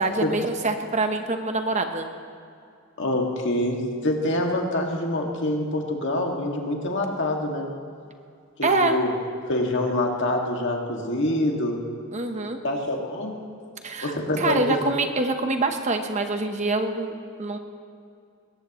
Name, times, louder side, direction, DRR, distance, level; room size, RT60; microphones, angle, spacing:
voice 1, 0.0-2.1 8.6-9.0 12.1-12.6 13.8-17.1 17.4-17.6, right 3 dB, 30° right, 6 dB, 1.0 m, -25 dB
voice 2, 3.0-7.7 8.6-9.1 9.5-11.8 12.6-13.4 14.0-14.9, left 1 dB, 55° left, 1 dB, 2.0 m, -25 dB
20.5 x 18.0 x 3.1 m, 2.4 s
head